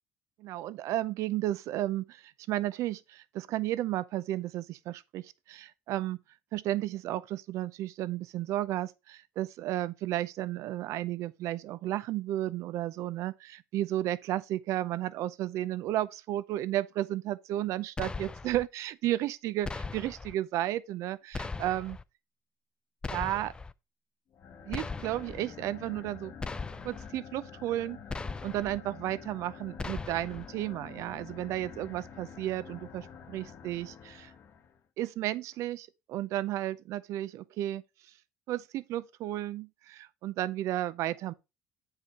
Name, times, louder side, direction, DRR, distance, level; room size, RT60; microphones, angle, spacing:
voice 1, 0.4-6.2 6.5-22.0 23.1-23.5 24.7-26.3 26.8-28.0 28.4-34.3 35.0-37.8 38.5-41.3, right 14 dB, 70° right, 0.5 m, -33 dB
sound 1, 18.0-18.6 19.6-20.3 21.3-22.0 23.0-23.7 24.7-25.4 26.4-27.1 28.1-28.8 29.8-30.5, left 3 dB, 15° left, 0.4 m, -38 dB
sound 2, 24.3-34.8, left 7 dB, 50° left, 1.0 m, -48 dB
8.2 x 4.9 x 4.2 m
cardioid pair, 115°, 5 cm